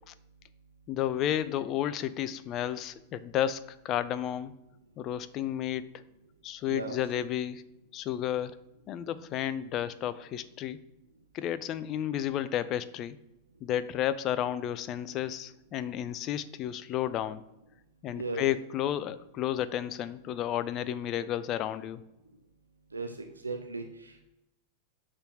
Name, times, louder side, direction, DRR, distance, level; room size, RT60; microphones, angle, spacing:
voice 1, 0.9-4.5 5.0-5.9 6.4-7.6 7.9-8.6 8.9-10.8 11.3-13.2 13.6-17.4 18.0-22.0, left 11 dB, 35° left, 15 dB, 0.4 m, -32 dB
voice 2, 6.7-7.0 18.2-18.4 22.9-23.1 23.4-24.2, right 3 dB, 80° right, 4 dB, 0.6 m, -36 dB
6.6 x 3.7 x 4.6 m, 0.90 s
figure-of-eight pair, 90°, 0 cm